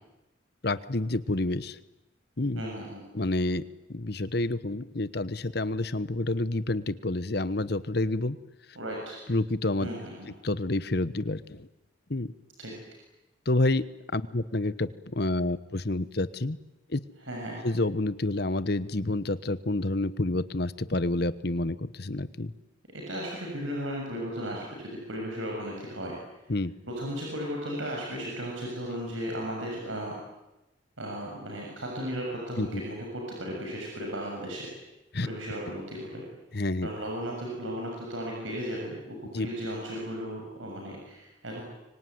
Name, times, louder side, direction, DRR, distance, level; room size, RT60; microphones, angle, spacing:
voice 1, 0.6-1.8 2.4-2.6 3.1-3.6 3.9-8.4 9.3-9.9 10.4-11.7 12.1-12.3 13.5-13.8 14.1-16.6 16.9-17.0 17.6-22.5 26.5-26.7 32.6-32.7 35.1-35.3 36.5-36.9 39.3-39.5, left 2 dB, 55° left, 15 dB, 1.1 m, -28 dB
voice 2, 2.6-3.0 8.8-9.2 9.8-10.3 12.6-12.7 17.3-17.6 22.9-26.1 26.9-30.1 31.0-34.7 35.2-36.2 36.8-41.6, equal, 85° right, -1 dB, 7.1 m, -35 dB
25.0 x 25.0 x 9.5 m, 0.97 s
head